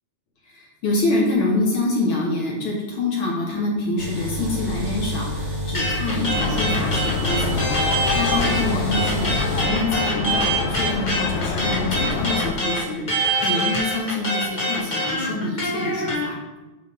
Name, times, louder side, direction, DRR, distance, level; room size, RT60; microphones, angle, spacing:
voice 1, 0.5-7.7 8.1-9.3 9.6-13.1 13.4-16.4, left 2 dB, 60° left, -2 dB, 1.5 m, -26 dB
sound 1, 4.0-9.6, equal, 45° right, 1.5 m, -28 dB
sound 2, 5.7-8.6 8.9-16.2, right 1 dB, 40° left, 0.6 m, -24 dB
sound 3, 6.3-12.5, left 4 dB, 80° left, 1.9 m, -27 dB
8.0 x 5.0 x 3.4 m, 1.1 s
omnidirectional pair, 3.4 m